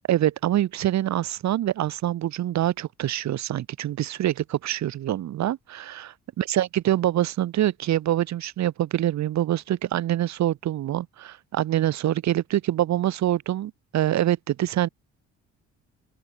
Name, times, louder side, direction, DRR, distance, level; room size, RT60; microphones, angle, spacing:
voice 1, 0.1-14.9, right 12 dB, 65° right, 1.0 m, -25 dB
open air
cardioid pair, 90°, 30 cm